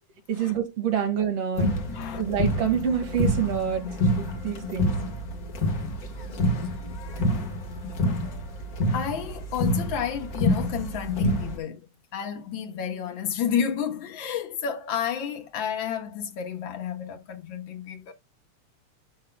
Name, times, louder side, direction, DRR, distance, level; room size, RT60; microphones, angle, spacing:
voice 1, 0.3-1.7 2.2-4.9, right 8 dB, 55° right, 2.7 m, -27 dB
sound 1, 1.6-11.6, left 1 dB, 40° left, 1.3 m, -27 dB
voice 2, 1.9-2.2 8.9-18.1, left 8 dB, 65° left, 1.2 m, -31 dB
8.4 x 7.3 x 2.2 m
omnidirectional pair, 3.5 m